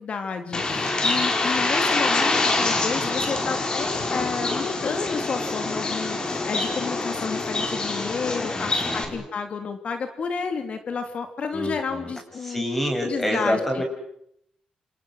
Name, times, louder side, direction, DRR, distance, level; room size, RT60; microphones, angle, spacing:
voice 1, 0.0-12.6 13.0-13.8, left 5 dB, 50° left, 7 dB, 3.0 m, -31 dB
Bird, 0.5-9.0, left 3 dB, 35° left, 5.4 m, -25 dB
voice 2, 8.5-9.2 11.5-12.1 12.4-13.8, equal, 10° left, 3 dB, 7.1 m, -27 dB
28.5 x 28.5 x 6.4 m, 0.73 s
cardioid pair, 110°, 3 cm